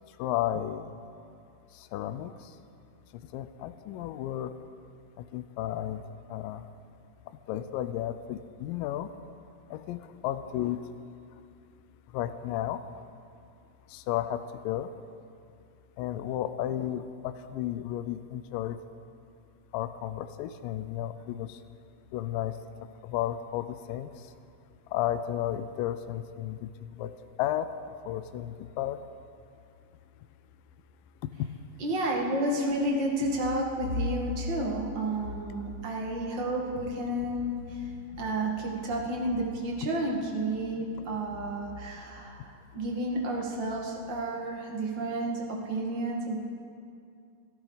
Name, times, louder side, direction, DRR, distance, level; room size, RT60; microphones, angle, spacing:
voice 1, 0.2-1.0 1.7-2.6 3.1-4.5 5.2-6.0 6.3-6.7 7.5-9.1 9.7-10.8 12.1-13.0 13.9-14.9 16.0-18.8 19.7-21.6 22.1-22.5 23.0-24.3 24.9-27.1 27.4-27.7 28.1-29.0 31.2-31.5, left 12 dB, 85° left, 11 dB, 2.3 m, -33 dB
voice 2, 31.8-46.4, right 1 dB, 40° right, -1 dB, 2.1 m, -31 dB
26.0 x 13.5 x 4.0 m, 2.4 s
omnidirectional pair, 4.0 m